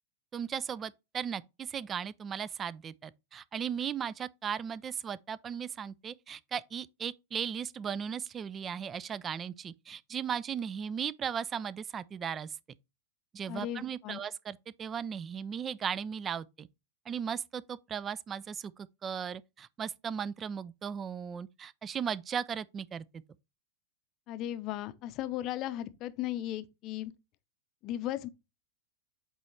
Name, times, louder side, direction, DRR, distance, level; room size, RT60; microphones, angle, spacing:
voice 1, 0.3-12.5 13.3-16.7 17.1-23.0, right 7 dB, 25° right, 0.3 m, -37 dB
voice 2, 13.5-14.2 24.3-27.1 27.8-28.3, left 13 dB, 40° left, 0.6 m, -36 dB
8.1 x 3.1 x 4.2 m
figure-of-eight pair, 90°, 0 cm